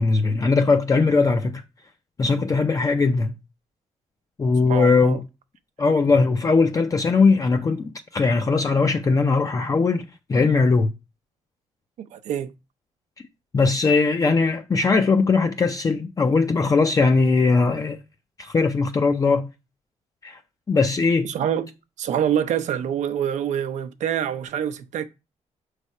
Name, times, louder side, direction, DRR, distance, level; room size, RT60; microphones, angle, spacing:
voice 1, 0.0-1.6 2.2-3.3 4.4-5.2 5.8-10.9 13.5-18.0 18.4-19.5 20.2-20.4 20.7-21.3, left 4 dB, 30° left, 0.5 m, -20 dB
voice 2, 4.7-5.2 12.1-12.5 21.2-25.1, right 9 dB, 80° right, 0.6 m, -26 dB
6.3 x 3.4 x 5.3 m
cardioid pair, 105°, 12 cm